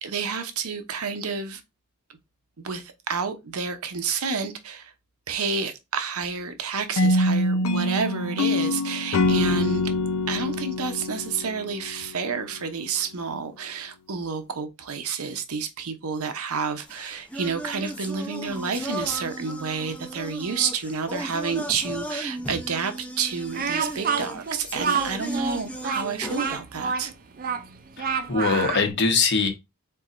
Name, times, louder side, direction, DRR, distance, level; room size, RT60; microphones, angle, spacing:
voice 1, 0.0-1.6 2.6-4.9 5.3-9.9 10.3-27.1, right 5 dB, 90° right, 0.8 m, -30 dB
sound 1, 7.0-12.1, left 1 dB, 85° left, 0.6 m, -24 dB
sound 2, 16.9-26.6, right 1 dB, 5° left, 0.6 m, -36 dB
Speech, 23.5-28.9, right 6 dB, 40° right, 0.5 m, -28 dB
voice 2, 28.0-29.5, left 4 dB, 55° left, 1.1 m, -22 dB
4.6 x 4.0 x 2.5 m
head